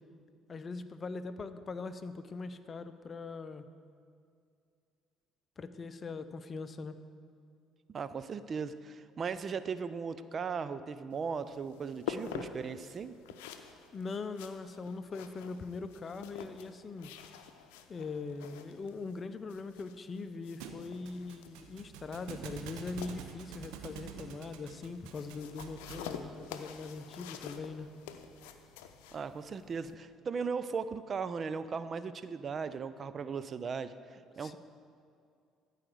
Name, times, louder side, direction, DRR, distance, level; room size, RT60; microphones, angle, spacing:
voice 1, 0.5-3.6 5.6-7.0 13.9-17.1 17.9-27.9 34.4-34.6, left 4 dB, 40° left, 12 dB, 0.6 m, -41 dB
voice 2, 7.9-13.2 29.1-34.6, right 5 dB, 45° right, 13 dB, 0.5 m, -37 dB
sound 1, 11.1-29.9, left 8 dB, 85° left, 0.6 m, -48 dB
Thump thud, 20.6-26.2, right 7 dB, 80° right, 0.8 m, -47 dB
13.5 x 4.9 x 7.8 m, 2.4 s
supercardioid pair, 65°, 0 cm